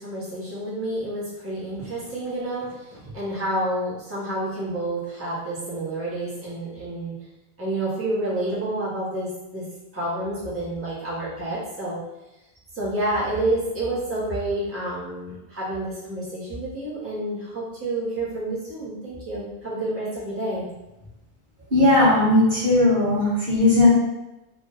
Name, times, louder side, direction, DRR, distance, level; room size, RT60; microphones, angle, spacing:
voice 1, 0.0-7.1 7.6-9.6 9.9-12.0 12.7-20.6, right 1 dB, 15° right, -9 dB, 1.2 m, -29 dB
voice 2, 21.7-23.9, left 2 dB, 50° right, -9 dB, 1.6 m, -17 dB
3.5 x 2.6 x 4.0 m, 0.96 s
omnidirectional pair, 1.0 m